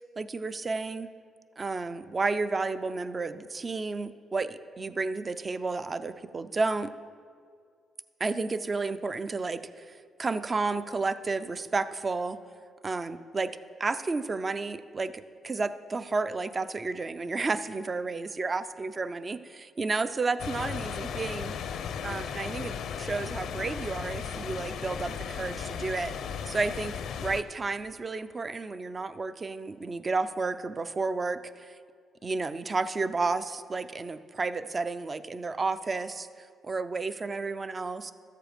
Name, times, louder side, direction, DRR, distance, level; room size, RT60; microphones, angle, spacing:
voice 1, 0.2-1.1 1.6-6.9 8.2-12.4 12.8-15.1 15.4-21.5 22.0-26.1 26.5-26.9 27.2-31.7 32.2-38.1, right 3 dB, 30° right, 13 dB, 0.5 m, -32 dB
sound 1, 20.4-27.4, left 7 dB, 75° left, 0.5 m, -36 dB
13.0 x 7.6 x 5.1 m, 2.1 s
cardioid pair, 90°, 0 cm